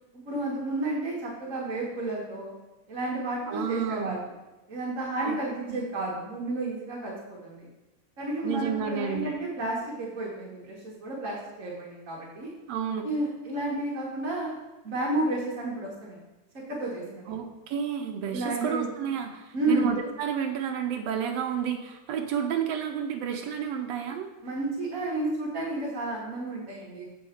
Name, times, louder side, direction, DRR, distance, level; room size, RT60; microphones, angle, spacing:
voice 1, 0.3-2.5 2.9-4.2 4.7-7.7 8.2-12.5 13.0-14.6 14.8-16.2 16.5-17.3 18.3-18.9 19.5-19.9 24.4-27.0, right 2 dB, 60° right, -4 dB, 0.8 m, -31 dB
voice 2, 3.5-4.2 5.2-5.4 5.7-5.8 8.4-9.3 12.7-13.1 17.3-24.3, right 8 dB, 75° right, 4 dB, 1.6 m, -31 dB
7.4 x 6.4 x 4.3 m, 1.0 s
omnidirectional pair, 3.5 m